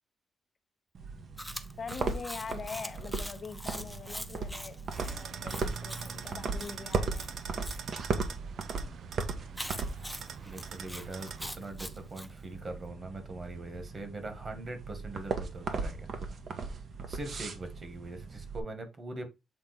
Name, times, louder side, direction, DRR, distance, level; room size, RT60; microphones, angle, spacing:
sound 1, 0.9-18.6, right 4 dB, 60° right, 1.4 m, -38 dB
Chewing mastication, 1.4-7.8 9.5-12.3, equal, ahead, 0.9 m, -43 dB
voice 1, 1.8-7.3, left 5 dB, 50° left, 0.9 m, -43 dB
sound 2, 4.9-11.5, right 7 dB, 80° right, 0.7 m, -44 dB
voice 2, 10.4-16.1 17.1-19.3, right 2 dB, 40° right, 2.0 m, -42 dB
7.6 x 3.7 x 4.5 m
cardioid pair, 90°, 0 cm